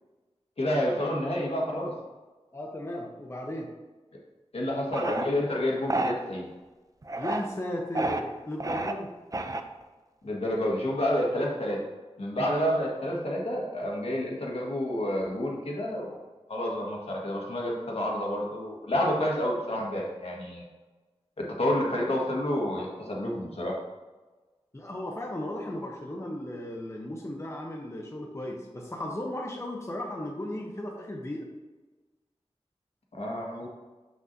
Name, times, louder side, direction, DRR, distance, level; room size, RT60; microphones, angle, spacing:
voice 1, 0.6-1.9 4.5-6.5 10.2-11.8 12.2-16.2 16.5-20.6 21.4-23.8 33.1-33.7, left 1 dB, 65° left, -2 dB, 1.6 m, -29 dB
voice 2, 2.5-3.7 7.2-9.2 24.7-31.4, left 1 dB, 25° left, -1 dB, 0.8 m, -35 dB
sound 1, 4.9-5.3 5.9-6.1 7.0-7.5 7.9-8.2 8.6-8.9 9.3-9.8, right 2 dB, 30° right, 0.5 m, -29 dB
7.2 x 6.0 x 2.7 m, 1.2 s
wide cardioid pair, 80°, 11 cm